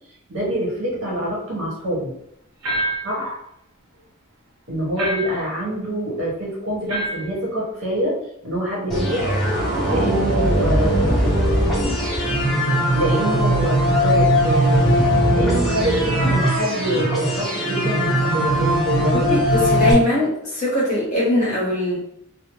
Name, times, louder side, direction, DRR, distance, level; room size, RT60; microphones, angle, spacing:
voice 1, 0.3-2.1 3.0-3.4 4.7-8.2 8.4-9.3 9.8-11.8 12.7-19.4, right 1 dB, 65° right, -5 dB, 1.1 m, -25 dB
sound 1, 2.6-3.2 5.0-5.5 6.9-7.3, right 1 dB, 85° right, 0.7 m, -26 dB
sound 2, 8.9-19.9, equal, ahead, 0.7 m, -19 dB
voice 2, 19.1-22.0, left 1 dB, 35° left, -6 dB, 0.8 m, -21 dB
2.7 x 2.0 x 2.9 m, 0.73 s
head